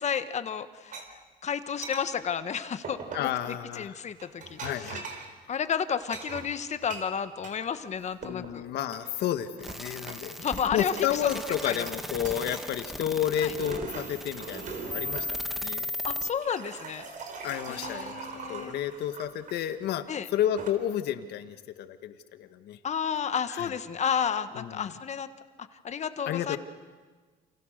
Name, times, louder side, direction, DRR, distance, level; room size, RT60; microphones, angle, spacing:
voice 1, 0.0-3.3 3.8-5.0 5.5-8.7 10.4-11.8 13.4-13.5 16.0-17.1 17.7-18.8 20.1-20.3 22.8-25.3 25.6-26.6, left 7 dB, 40° left, 11 dB, 1.4 m, -32 dB
sound 1, 0.9-1.0 1.8-2.1 2.8-3.4 4.2-5.3 6.1-7.6 7.9-8.5 8.9-9.8 10.1-10.7 11.0-12.0 12.2-12.7 13.3-15.3 16.1-19.6 20.3-20.7, right 5 dB, 50° right, 4.4 m, -41 dB
voice 2, 3.1-4.0 4.6-5.3 8.2-10.4 10.7-15.9 17.4-20.0 20.3-22.8 23.5-23.7 24.6-24.9 26.3-26.6, left 10 dB, 75° left, 9 dB, 1.8 m, -31 dB
sound 2, 9.6-16.3, left 1 dB, ahead, 1.4 m, -37 dB
29.0 x 28.5 x 6.7 m, 1.4 s
cardioid pair, 110°, 17 cm